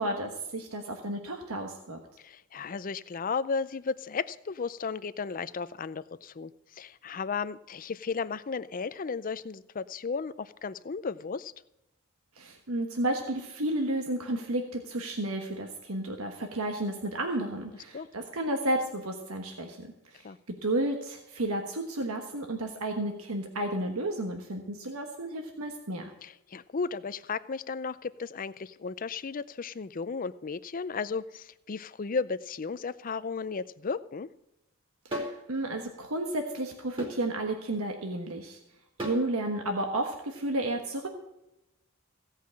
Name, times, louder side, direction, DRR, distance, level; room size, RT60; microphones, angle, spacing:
voice 1, 0.0-2.0 12.3-20.3 20.6-26.0 35.0-38.6 39.0-41.1, right 1 dB, 85° right, 4 dB, 1.3 m, -32 dB
voice 2, 2.2-11.5 17.9-18.1 20.2-20.4 26.2-34.3, left 5 dB, 40° left, 15 dB, 0.5 m, -34 dB
sound 1, 35.1-35.4 37.0-37.2 39.0-39.3, equal, 25° right, 2.9 m, -34 dB
16.5 x 5.7 x 8.5 m, 0.90 s
head